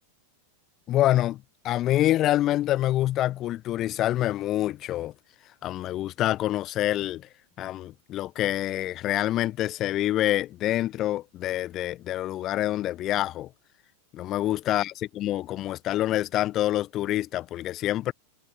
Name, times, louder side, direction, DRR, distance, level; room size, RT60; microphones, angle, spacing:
voice 1, 0.9-5.1 5.6-7.3 7.6-13.5 14.1-18.1, left 14 dB, 35° left, 1.1 m, -26 dB
figure-of-eight pair, 90°, 0 cm